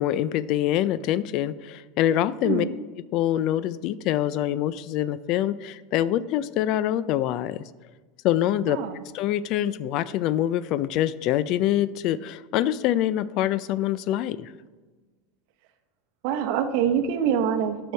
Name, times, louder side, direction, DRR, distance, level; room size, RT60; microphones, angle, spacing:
voice 1, 0.0-2.7 3.1-7.6 8.2-8.8 9.1-14.5, left 12 dB, 55° left, 17 dB, 0.3 m, -25 dB
voice 2, 8.7-9.0 16.2-17.9, right 8 dB, 65° right, 7 dB, 0.9 m, -25 dB
9.4 x 6.2 x 4.5 m, 1.3 s
supercardioid pair, 120°, 0 cm